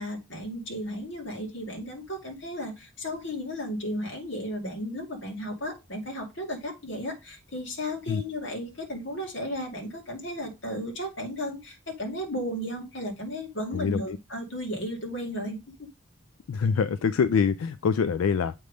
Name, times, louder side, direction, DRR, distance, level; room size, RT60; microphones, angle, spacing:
voice 1, 0.0-15.6, equal, 60° left, 2.3 m, -34 dB
voice 2, 13.7-14.2 16.5-18.5, left 6 dB, 85° left, 0.4 m, -25 dB
7.8 x 3.3 x 5.2 m
head